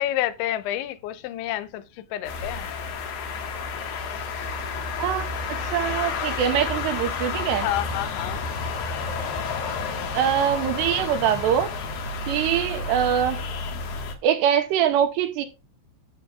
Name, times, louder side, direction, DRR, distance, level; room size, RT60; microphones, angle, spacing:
voice 1, 0.0-1.8 2.1-2.7 7.5-8.5, left 13 dB, 85° left, 3.1 m, -29 dB
sound 1, 2.2-14.1, left 4 dB, 65° left, 2.8 m, -30 dB
voice 2, 5.7-7.7 10.1-11.7 12.3-13.4 14.2-15.5, right 9 dB, 80° right, 2.9 m, -23 dB
14.5 x 7.8 x 2.4 m
omnidirectional pair, 5.2 m